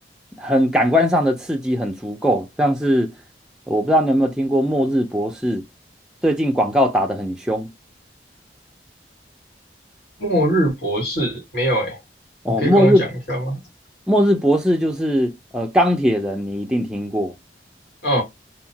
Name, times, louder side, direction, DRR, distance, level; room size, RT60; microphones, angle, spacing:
voice 1, 0.4-3.1 3.7-5.6 6.2-7.7 12.4-13.1 14.1-17.3, equal, 5° right, 0.3 m, -19 dB
voice 2, 10.2-12.0 12.5-13.6 18.0-18.2, right 1 dB, 70° left, 1.6 m, -21 dB
2.9 x 2.2 x 2.7 m
head